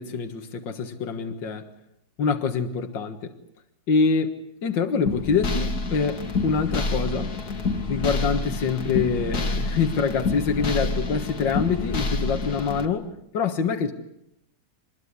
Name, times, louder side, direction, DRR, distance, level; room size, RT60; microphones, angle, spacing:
voice 1, 0.0-1.7 2.2-3.3 3.9-7.3 7.9-13.9, left 5 dB, 85° left, 7 dB, 2.3 m, -25 dB
sound 1, 5.1-12.9, left 3 dB, 55° left, 2.4 m, -28 dB
25.0 x 21.5 x 9.6 m, 0.77 s
omnidirectional pair, 2.0 m